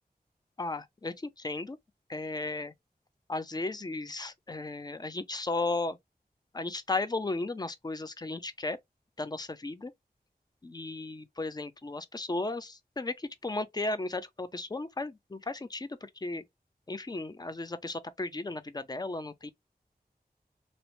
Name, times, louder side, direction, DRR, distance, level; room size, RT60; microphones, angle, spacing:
voice 1, 0.6-1.8 2.1-2.7 3.3-6.0 6.5-8.8 9.2-9.9 10.6-16.4 16.9-19.5, left 2 dB, 25° left, 0.4 m, -35 dB
2.6 x 2.1 x 3.0 m
wide cardioid pair, 55°, 17 cm